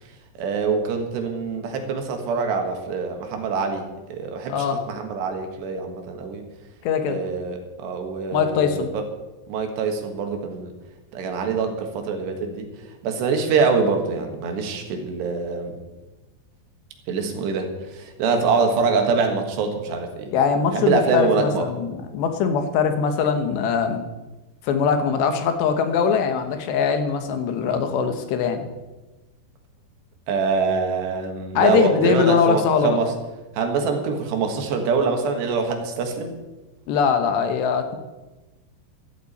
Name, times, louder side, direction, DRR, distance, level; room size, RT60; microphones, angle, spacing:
voice 1, 0.4-3.8 4.1-6.4 7.0-9.0 9.5-10.7 11.1-12.7 13.0-15.7 17.1-20.3 20.7-21.7 30.3-33.1 33.6-36.3, right 5 dB, 75° right, 5 dB, 3.6 m, -24 dB
voice 2, 4.5-4.8 6.8-7.2 8.3-8.9 20.3-24.0 24.6-28.7 31.5-33.0 36.9-38.0, left 6 dB, 75° left, 7 dB, 3.2 m, -21 dB
14.0 x 13.0 x 4.2 m, 1.1 s
omnidirectional pair, 5.1 m